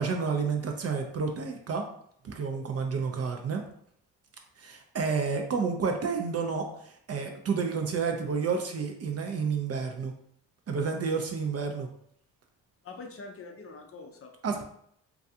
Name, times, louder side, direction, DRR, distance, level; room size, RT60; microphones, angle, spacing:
voice 1, 0.0-1.9 2.2-3.6 4.6-10.1 10.7-11.9 14.4-14.6, right 5 dB, 40° right, 3 dB, 0.4 m, -30 dB
voice 2, 12.8-14.6, left 3 dB, 35° left, 3 dB, 0.5 m, -45 dB
2.3 x 2.3 x 2.6 m, 0.68 s
supercardioid pair, 55°, 41 cm